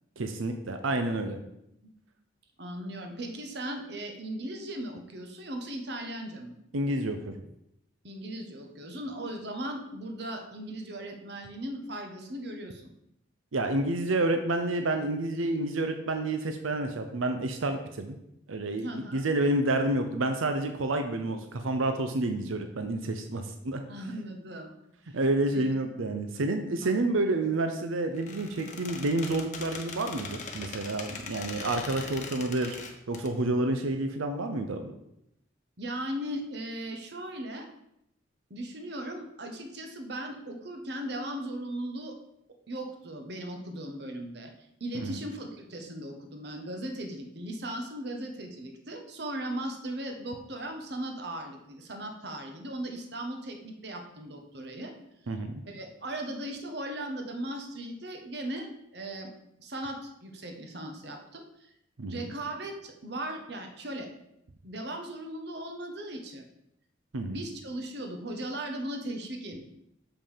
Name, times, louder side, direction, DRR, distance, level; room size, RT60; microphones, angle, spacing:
voice 1, 0.2-1.4 6.7-7.4 13.5-18.2 18.5-23.8 25.1-32.8 33.1-34.9 44.9-45.2 55.3-55.6 62.0-62.3 67.1-67.4, right 2 dB, 90° right, 6 dB, 0.7 m, -29 dB
voice 2, 2.6-6.5 8.0-12.8 18.8-19.2 23.9-24.7 25.1-25.2 25.5-25.7 35.8-37.7 38.5-42.2 42.7-44.5 44.8-54.9 55.7-59.3 59.6-61.7 62.1-64.1 64.6-66.5 67.3-69.6, right 1 dB, 55° right, 4 dB, 1.2 m, -38 dB
Squeak, 28.1-33.3, left 4 dB, 40° left, 1.0 m, -41 dB
6.8 x 5.3 x 5.6 m, 0.80 s
head